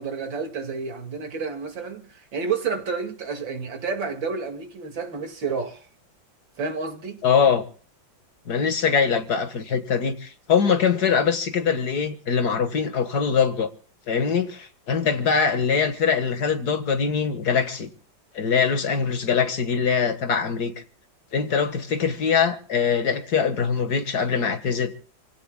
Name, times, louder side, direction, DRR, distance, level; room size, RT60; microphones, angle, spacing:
voice 1, 0.0-5.9 6.6-7.2, right 5 dB, 80° right, 3.0 m, -30 dB
voice 2, 7.2-7.6 8.5-13.7 14.1-17.9 18.3-20.7 21.3-24.9, left 6 dB, 55° left, 2.0 m, -23 dB
28.5 x 16.5 x 2.3 m
omnidirectional pair, 2.0 m